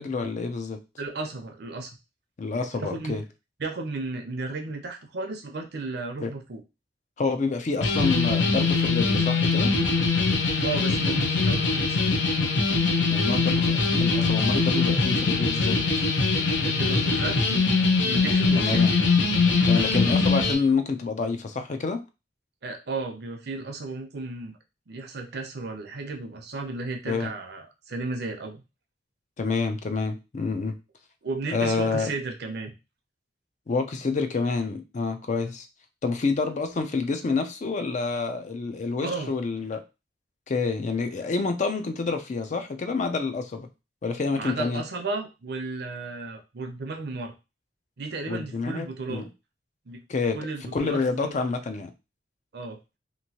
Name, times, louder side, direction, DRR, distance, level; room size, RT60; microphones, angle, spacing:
voice 1, 0.0-0.8 2.4-3.2 6.2-6.3 7.2-9.7 13.1-16.0 18.5-18.9 19.6-22.0 27.1-27.3 29.4-30.8 31.5-32.1 33.7-35.6 36.0-39.8 40.5-43.7 44.0-44.8 48.3-49.3 50.1-50.4 50.7-51.9, left 4 dB, 40° left, 7 dB, 0.4 m, -28 dB
voice 2, 1.0-1.9 2.8-3.2 3.6-6.6 10.6-12.0 16.6-17.4 18.0-18.9 22.6-24.5 24.9-28.6 31.2-32.7 39.0-39.3 44.3-47.3 48.0-49.3 49.9-50.0 50.3-51.4 52.5-52.8, right 3 dB, 60° right, 4 dB, 0.6 m, -34 dB
sound 1, 7.8-20.5, left 4 dB, 85° left, 0.7 m, -22 dB
2.9 x 2.6 x 2.8 m, 0.28 s
head